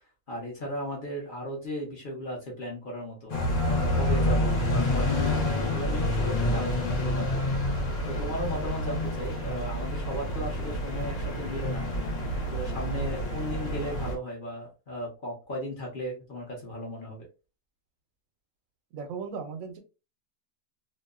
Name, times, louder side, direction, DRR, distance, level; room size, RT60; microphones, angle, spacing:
voice 1, 0.3-3.3 3.6-7.8 8.1-11.9 12.5-17.3, equal, 45° left, -2 dB, 0.8 m, -36 dB
sound 1, 3.3-14.2, left 1 dB, 70° left, 1.1 m, -28 dB
voice 2, 18.9-19.8, right 5 dB, 80° right, 6 dB, 1.0 m, -36 dB
2.7 x 2.1 x 2.3 m, 0.30 s
omnidirectional pair, 1.4 m